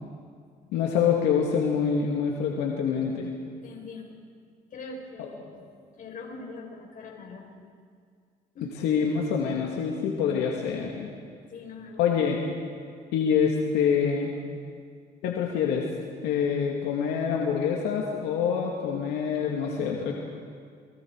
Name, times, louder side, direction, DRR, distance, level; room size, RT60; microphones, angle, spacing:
voice 1, 0.7-3.3 5.2-5.3 8.8-11.1 12.0-12.4 13.1-14.3 15.2-15.9 16.2-20.2, left 7 dB, 85° left, -1 dB, 2.5 m, -26 dB
voice 2, 3.6-4.2 4.7-5.6 6.0-7.5 8.5-8.7 11.5-12.0, left 3 dB, 55° left, 1 dB, 5.1 m, -42 dB
30.0 x 22.5 x 4.8 m, 2.1 s
cardioid pair, 110°, 17 cm